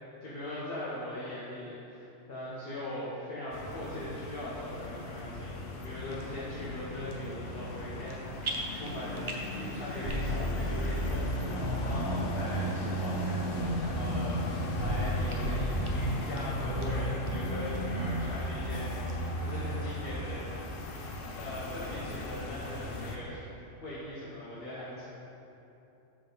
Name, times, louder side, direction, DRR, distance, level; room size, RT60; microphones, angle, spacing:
voice 1, 0.2-20.4 21.3-23.4 23.8-25.1, left 1 dB, 50° left, -9 dB, 1.3 m, -40 dB
sound 1, 3.5-23.2, left 2 dB, 75° left, 1.1 m, -37 dB
sound 2, 6.1-6.3 6.9-7.4 7.7-8.1 8.4-9.6 9.9-10.5 10.8-10.9 11.6-11.7 12.3-12.4 13.1-13.2 13.6-13.7 14.2-14.9 15.3-15.4 15.8-15.9 16.2-16.9 17.3-17.4 17.7-17.8 18.2-18.7 19.1-19.2, right 2 dB, 35° right, 0.6 m, -42 dB
sound 3, 10.1-15.1 15.4-20.2, right 1 dB, 70° right, 1.3 m, -34 dB
5.4 x 5.2 x 5.7 m, 2.9 s
omnidirectional pair, 1.3 m